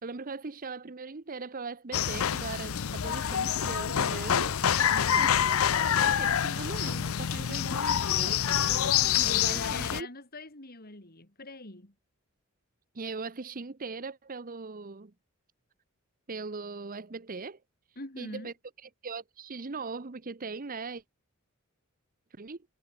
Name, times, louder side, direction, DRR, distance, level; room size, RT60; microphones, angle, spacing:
voice 1, 0.0-4.6 5.1-10.1 12.9-15.1 16.3-17.6 18.2-18.5 18.8-21.0 22.3-22.6, right 4 dB, 40° right, 0.8 m, -40 dB
sound 1, 1.9-10.0, left 9 dB, 80° left, 0.6 m, -27 dB
voice 2, 4.8-5.3 9.5-11.9 18.0-18.5, left 3 dB, 45° left, 4.1 m, -43 dB
head